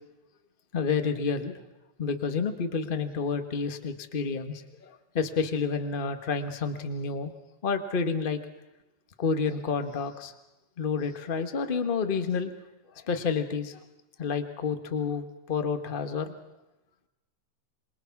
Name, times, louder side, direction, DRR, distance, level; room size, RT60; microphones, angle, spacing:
voice 1, 0.7-1.5 2.0-7.3 7.6-8.4 9.2-10.3 10.8-12.5 13.1-13.8 14.2-16.3, left 5 dB, 55° left, 8 dB, 0.5 m, -29 dB
27.0 x 22.5 x 5.9 m, 0.98 s
omnidirectional pair, 3.4 m